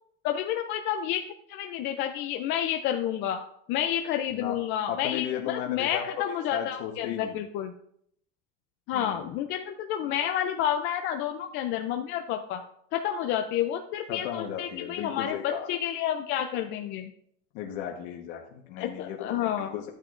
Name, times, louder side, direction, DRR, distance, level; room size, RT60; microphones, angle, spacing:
voice 1, 0.2-1.2 1.5-3.4 3.7-7.7 8.9-12.6 12.9-17.1 18.8-19.7, left 10 dB, 35° left, 5 dB, 0.4 m, -30 dB
voice 2, 4.9-6.1 6.5-7.4 8.9-9.4 14.1-15.7 17.5-19.9, left 9 dB, 60° left, 1 dB, 1.2 m, -35 dB
12.5 x 9.0 x 2.5 m, 0.71 s
cardioid pair, 170°, 35 cm